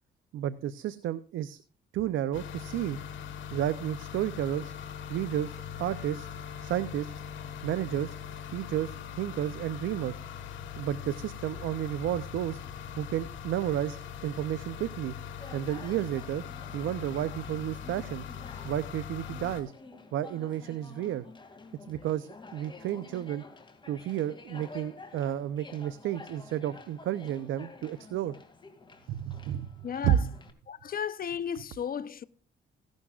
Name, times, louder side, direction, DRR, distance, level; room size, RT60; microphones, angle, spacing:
voice 1, 0.3-1.6 1.9-3.0 3.5-4.7 5.1-5.5 5.8-6.3 6.6-7.1 7.6-8.1 8.5-10.2 10.8-12.6 13.0-15.1 15.5-16.4 16.7-18.2 18.6-19.7 20.1-21.2 21.9-23.4 23.9-28.3 29.1-29.7 30.0-30.3, right 11 dB, 80° right, 0.7 m, -31 dB
sound 1, 2.3-19.6, left 8 dB, 75° left, 2.2 m, -41 dB
Conversation, 15.3-30.5, left 3 dB, 25° left, 2.3 m, -50 dB
voice 2, 29.8-30.2 30.7-32.2, left 7 dB, 45° left, 0.8 m, -34 dB
16.0 x 11.5 x 2.4 m
cardioid pair, 90°, 20 cm